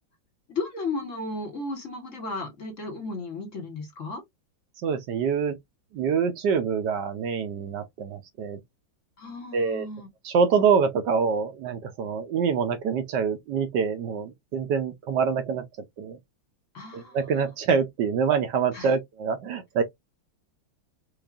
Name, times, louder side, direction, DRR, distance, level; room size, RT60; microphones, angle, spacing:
voice 1, 0.5-4.2 9.2-10.1 16.7-17.5 18.7-18.9, left 3 dB, 45° left, 1.5 m, -34 dB
voice 2, 4.8-5.6 5.9-8.6 9.5-9.9 10.2-15.6 16.0-16.2 16.9-19.8, right 6 dB, 70° right, 1.2 m, -25 dB
4.8 x 2.5 x 2.4 m
omnidirectional pair, 2.1 m